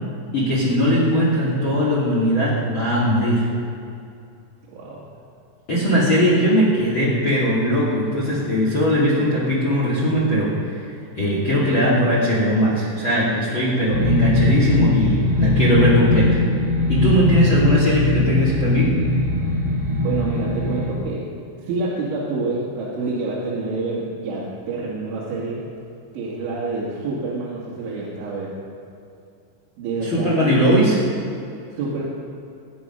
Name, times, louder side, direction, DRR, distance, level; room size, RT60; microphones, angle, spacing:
voice 1, 0.3-3.4 5.7-10.9 11.2-16.4 16.9-18.9 30.0-31.0, equal, 35° left, -5 dB, 2.5 m, -19 dB
voice 2, 4.7-5.1 20.0-21.3 21.7-25.6 26.1-28.5 29.8-30.6 31.7-32.0, right 3 dB, 75° right, -6 dB, 4.3 m, -27 dB
sound 1, 13.9-20.9, left 2 dB, 55° right, 1.4 m, -20 dB
22.0 x 9.4 x 5.5 m, 2.6 s
omnidirectional pair, 5.6 m